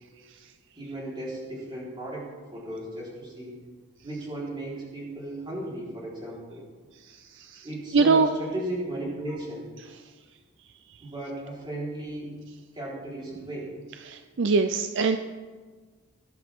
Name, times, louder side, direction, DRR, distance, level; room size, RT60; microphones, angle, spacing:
voice 1, 0.8-3.6 4.0-6.6 7.6-9.6 11.0-12.3 12.7-13.7, right 1 dB, 20° right, -6 dB, 4.2 m, -35 dB
voice 2, 7.9-8.3 14.1-15.2, right 4 dB, 55° right, 8 dB, 0.5 m, -22 dB
19.0 x 11.0 x 3.7 m, 1.4 s
head